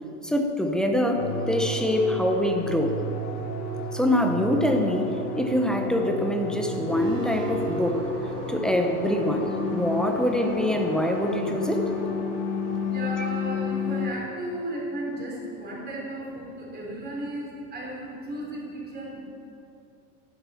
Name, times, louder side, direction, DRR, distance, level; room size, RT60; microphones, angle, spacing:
voice 1, 0.2-3.0 3.9-8.0 8.5-11.9 13.2-13.3, left 1 dB, ahead, 3 dB, 0.7 m, -25 dB
sound 1, 1.2-14.1, left 2 dB, 35° left, 1.8 m, -31 dB
sound 2, 6.9-12.1, equal, 80° right, 4.2 m, -37 dB
voice 2, 12.9-19.2, right 1 dB, 20° right, -3 dB, 4.0 m, -35 dB
14.5 x 11.5 x 5.7 m, 2.8 s
supercardioid pair, 150°, 47 cm